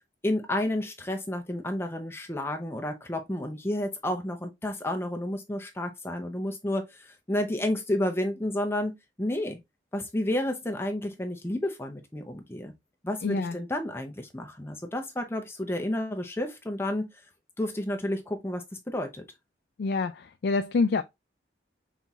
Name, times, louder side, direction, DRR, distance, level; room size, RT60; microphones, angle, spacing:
voice 1, 0.2-9.6 9.9-12.7 13.0-17.1 17.6-19.2, left 1 dB, 15° left, 0.6 m, -31 dB
voice 2, 13.2-13.6 19.8-21.0, left 3 dB, 65° left, 0.3 m, -26 dB
5.6 x 4.0 x 2.3 m
head